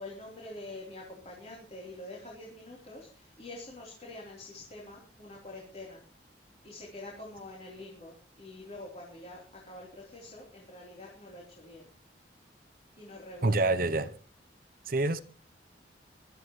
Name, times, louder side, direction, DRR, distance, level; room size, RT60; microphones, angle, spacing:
voice 1, 0.0-6.0 6.6-11.8 13.0-13.7, left 2 dB, 35° left, 3.7 m, -46 dB
voice 2, 13.4-14.1 14.9-15.2, right 2 dB, 50° right, 0.7 m, -26 dB
23.5 x 13.0 x 3.1 m
head